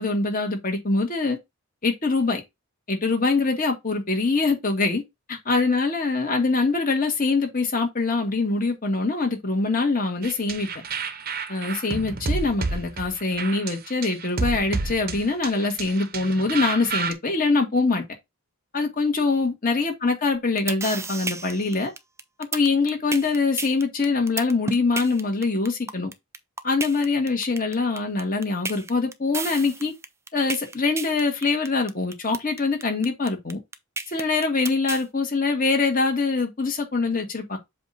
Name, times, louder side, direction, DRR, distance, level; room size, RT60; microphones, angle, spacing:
voice 1, 0.0-1.4 1.8-2.4 2.9-5.0 5.3-10.7 11.5-18.0 18.7-21.9 22.5-26.1 26.6-29.9 30.3-33.6 34.1-37.6, left 3 dB, 40° left, 1.7 m, -24 dB
sound 1, 10.2-17.1, right 4 dB, 40° right, 0.8 m, -30 dB
sound 2, 20.3-35.0, right 3 dB, 10° right, 0.4 m, -32 dB
7.6 x 2.6 x 5.6 m
head